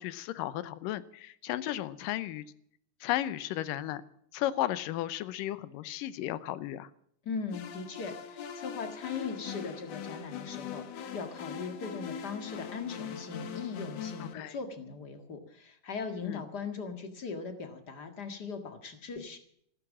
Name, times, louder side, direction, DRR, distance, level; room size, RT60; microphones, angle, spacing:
voice 1, 0.0-2.5 3.0-4.0 4.3-6.9 14.2-14.6 16.2-16.4, left 13 dB, 85° left, 15 dB, 2.5 m, -34 dB
voice 2, 7.2-19.4, left 5 dB, 35° left, 7 dB, 1.9 m, -39 dB
sound 1, 7.5-14.3, left 7 dB, 60° left, 2.1 m, -41 dB
15.0 x 12.5 x 7.4 m, 0.69 s
omnidirectional pair, 3.8 m